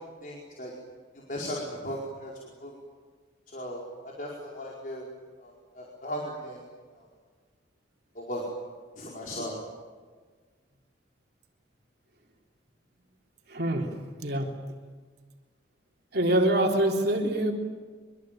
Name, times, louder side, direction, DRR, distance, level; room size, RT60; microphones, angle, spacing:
voice 1, 0.2-0.7 1.3-2.3 2.6-2.7 3.5-3.8 4.2-5.0 5.4-6.6 8.2-8.4 9.0-9.6, equal, 45° left, -2 dB, 4.8 m, -36 dB
voice 2, 13.5-13.9 14.2-14.5 16.1-17.5, right 1 dB, 55° right, 1 dB, 3.6 m, -25 dB
25.0 x 24.0 x 9.1 m, 1.5 s
head